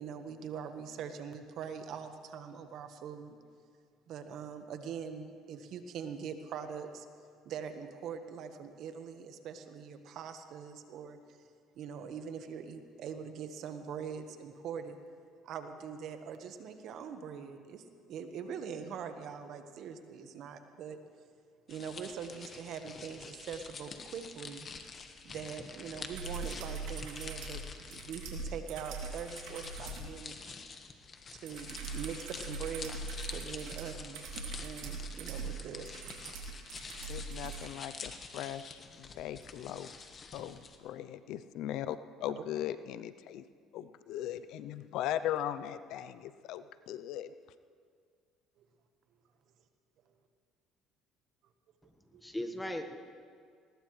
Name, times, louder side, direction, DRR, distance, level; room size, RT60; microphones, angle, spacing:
voice 1, 0.0-3.4 4.1-7.1 7.4-11.4 11.8-15.0 15.4-21.0 21.7-24.7 25.2-30.4 31.3-33.0 33.3-34.3 34.6-36.1 48.6-48.7 52.1-52.2, right 7 dB, 65° right, 7 dB, 1.3 m, -43 dB
sound 1, 21.7-40.8, left 5 dB, 40° left, 1.4 m, -47 dB
sound 2, 26.1-30.1 31.4-37.7 39.4-39.5, right 4 dB, 85° right, 2.9 m, -42 dB
voice 2, 37.1-39.9 40.3-43.4 43.7-47.3, left 11 dB, 70° left, 14 dB, 0.5 m, -39 dB
voice 3, 51.8-53.0, left 1 dB, 10° left, 6 dB, 1.4 m, -39 dB
20.0 x 19.0 x 3.3 m, 2.1 s
supercardioid pair, 85°, 0 cm